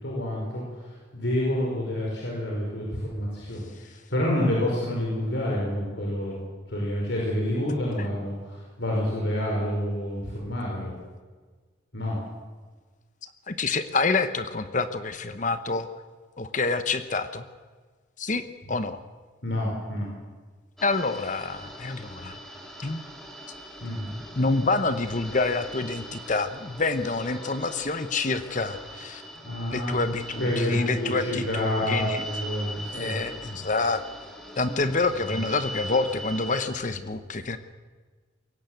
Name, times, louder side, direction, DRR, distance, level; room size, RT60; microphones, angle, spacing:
voice 1, 0.0-6.4 6.7-11.0 11.9-12.2 19.4-20.1 23.8-24.1 29.4-30.0 30.4-33.3 35.3-35.4, left 1 dB, 70° left, -3 dB, 5.1 m, -28 dB
voice 2, 13.5-15.9 16.4-17.4 18.2-19.0 20.8-22.4 22.8-23.0 24.3-29.2 29.7-32.2 32.9-34.0 34.6-37.6, left 3 dB, 40° left, 10 dB, 1.0 m, -27 dB
sound 1, 20.8-36.7, equal, ahead, 3.4 m, -41 dB
22.5 x 17.5 x 8.0 m, 1.4 s
head